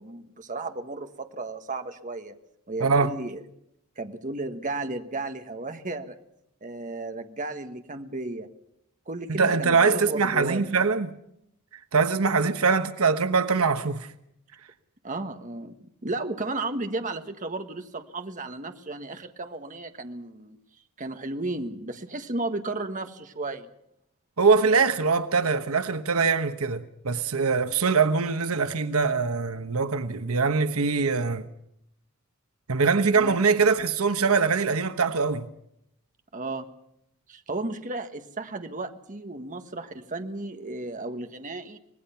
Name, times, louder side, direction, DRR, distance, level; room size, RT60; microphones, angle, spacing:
voice 1, 0.0-2.3 2.7-3.4 4.0-6.2 6.6-8.5 9.1-10.6 15.0-15.7 16.0-20.6 21.0-23.7 33.2-33.4 36.3-36.7 37.3-41.8, right 2 dB, 35° right, 1.5 m, -34 dB
voice 2, 2.8-3.1 9.3-11.1 11.9-14.1 24.4-31.5 32.7-35.5, right 4 dB, 75° right, 1.1 m, -23 dB
25.5 x 19.5 x 5.8 m
head